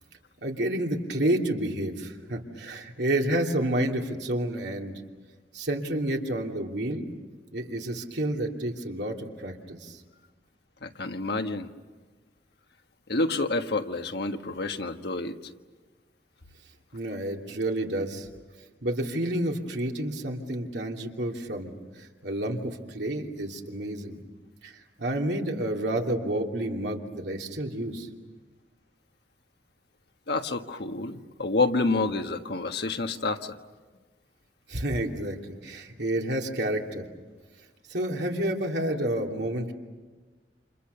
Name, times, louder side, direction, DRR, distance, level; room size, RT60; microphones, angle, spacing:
voice 1, 0.4-5.0 5.5-7.1 7.5-10.0 16.9-18.3 18.8-24.2 24.6-28.1 34.7-37.0 37.9-39.7, right 1 dB, 75° right, 1 dB, 2.9 m, -30 dB
voice 2, 10.8-11.7 13.1-15.4 30.3-33.6, left 3 dB, 65° left, 6 dB, 1.4 m, -28 dB
29.5 x 28.0 x 7.0 m, 1.3 s
head